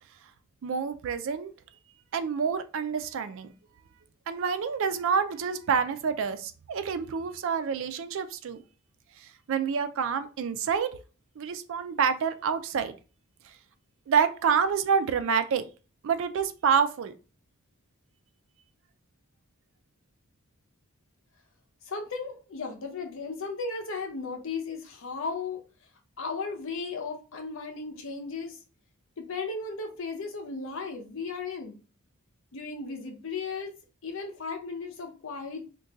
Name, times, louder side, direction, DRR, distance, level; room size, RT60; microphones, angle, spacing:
voice 1, 0.6-1.5 2.1-3.5 4.3-8.6 9.2-10.9 11.4-12.9 14.1-15.6 16.0-17.1, right 6 dB, 60° right, 0.3 m, -27 dB
voice 2, 21.8-25.6 26.2-28.6 29.2-31.8 32.5-33.7 34.0-35.6, left 4 dB, 60° left, 0.7 m, -35 dB
2.5 x 2.2 x 3.8 m
head